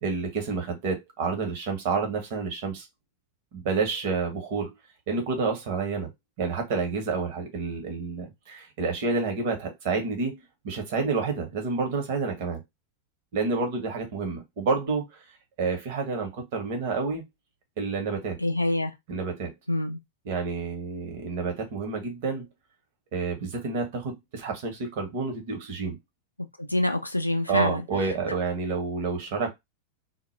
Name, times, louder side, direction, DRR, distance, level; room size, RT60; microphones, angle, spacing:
voice 1, 0.0-2.9 3.5-4.7 5.1-6.1 6.4-10.4 10.6-12.6 13.3-15.1 15.6-17.2 17.8-18.4 19.1-19.5 20.3-22.5 23.1-26.0 27.5-29.5, right 4 dB, 50° right, 0.8 m, -29 dB
voice 2, 18.4-18.9 19.7-20.0 26.6-27.8, left 1 dB, 85° left, 0.4 m, -26 dB
2.1 x 2.0 x 3.0 m
figure-of-eight pair, 90°, 0 cm